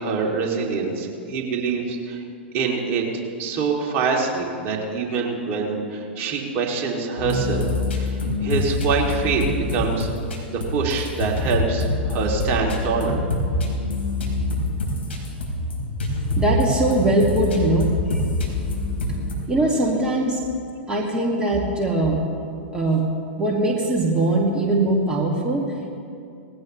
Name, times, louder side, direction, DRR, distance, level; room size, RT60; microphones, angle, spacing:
voice 1, 0.0-2.2 2.5-3.0 3.4-7.7 7.9-10.1 10.5-13.2, right 5 dB, 40° right, -1 dB, 2.6 m, -25 dB
sound 1, 7.2-19.3, left 2 dB, 75° left, 3.7 m, -25 dB
voice 2, 16.4-18.2 19.5-20.4 20.9-22.2 22.7-23.0 23.4-25.9, right 2 dB, 15° right, -3 dB, 2.0 m, -21 dB
19.5 x 16.0 x 3.1 m, 2.4 s
figure-of-eight pair, 100°, 6 cm